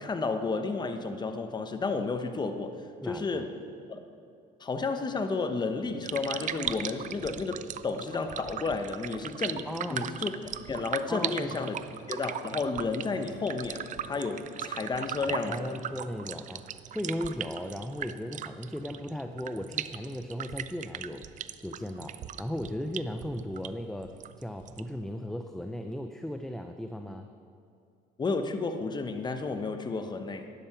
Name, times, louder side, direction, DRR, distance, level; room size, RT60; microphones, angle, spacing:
voice 1, 0.0-2.7 3.0-3.6 3.9-4.0 4.6-10.4 10.7-11.7 12.1-15.8 28.2-30.5, left 4 dB, 25° left, 7 dB, 1.0 m, -32 dB
voice 2, 3.0-3.5 9.7-10.1 11.1-11.7 15.3-21.2 21.6-27.3, left 1 dB, 5° left, 6 dB, 0.6 m, -37 dB
sound 1, 5.8-25.0, right 10 dB, 50° right, 0.5 m, -39 dB
11.5 x 11.0 x 5.9 m, 2.4 s
cardioid pair, 110°, 17 cm